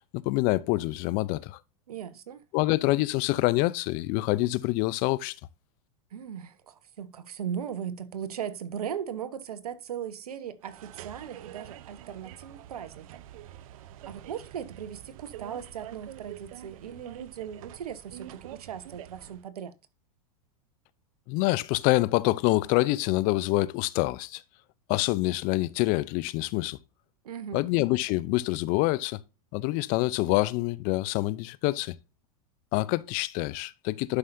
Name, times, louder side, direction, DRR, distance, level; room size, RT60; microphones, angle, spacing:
voice 1, 0.1-1.6 2.5-5.4 21.3-24.4 24.9-26.8 27.5-29.2 29.5-32.0 32.7-34.2, left 20 dB, 45° left, 0.7 m, -26 dB
voice 2, 1.9-2.4 6.1-13.1 14.1-19.7 27.2-27.6, right 8 dB, 85° right, 1.2 m, -38 dB
sound 1, 10.6-19.5, right 12 dB, 65° right, 0.8 m, -46 dB
11.5 x 5.5 x 2.7 m
hypercardioid pair, 110°, 19 cm